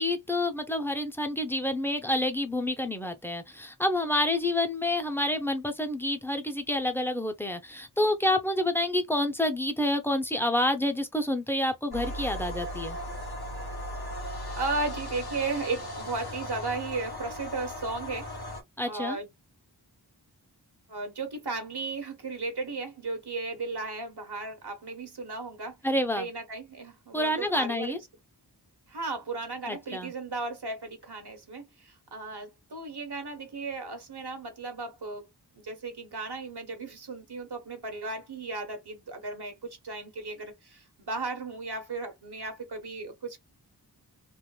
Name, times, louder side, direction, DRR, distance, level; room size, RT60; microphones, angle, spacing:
voice 1, 0.0-13.0 18.8-19.2 25.8-26.3 27.1-28.0 29.7-30.1, left 1 dB, 5° left, 0.8 m, -28 dB
sound 1, 11.9-18.6, equal, 60° left, 1.6 m, -37 dB
voice 2, 14.5-18.2 18.9-19.3 20.9-25.8 26.1-27.9 28.9-35.2 35.5-43.4, right 3 dB, 65° right, 1.2 m, -35 dB
3.4 x 2.5 x 2.3 m
wide cardioid pair, 55°, 42 cm